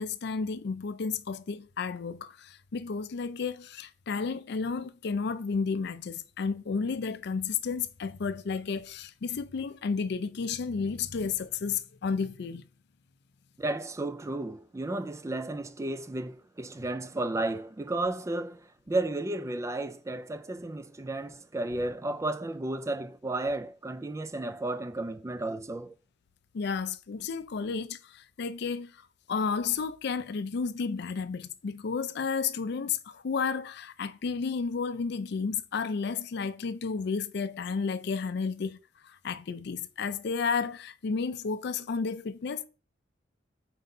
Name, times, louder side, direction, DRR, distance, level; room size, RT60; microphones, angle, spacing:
voice 1, 0.0-12.7 26.5-29.0 29.3-38.8 39.0-42.6, left 5 dB, 60° left, 0.4 m, -32 dB
voice 2, 13.6-25.9, right 2 dB, 15° right, 0.3 m, -33 dB
4.6 x 4.0 x 5.4 m
head